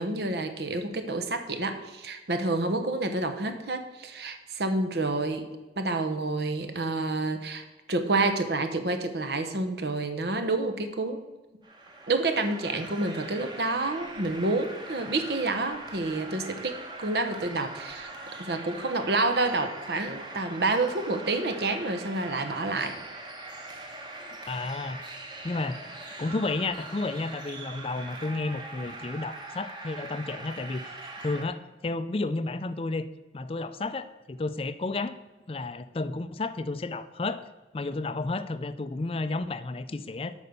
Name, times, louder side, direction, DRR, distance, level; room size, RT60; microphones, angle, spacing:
voice 1, 0.0-5.4 5.8-11.2 12.1-18.1 18.4-22.9, right 2 dB, 70° right, 8 dB, 1.0 m, -29 dB
sound 1, 11.6-31.4, right 2 dB, 25° right, 1.2 m, -42 dB
voice 2, 24.4-25.0 25.4-25.8 26.2-30.8 31.2-33.1 33.3-35.2 35.5-37.4 37.7-40.3, left 3 dB, 30° left, 12 dB, 0.4 m, -32 dB
8.4 x 5.5 x 6.8 m, 1.1 s
head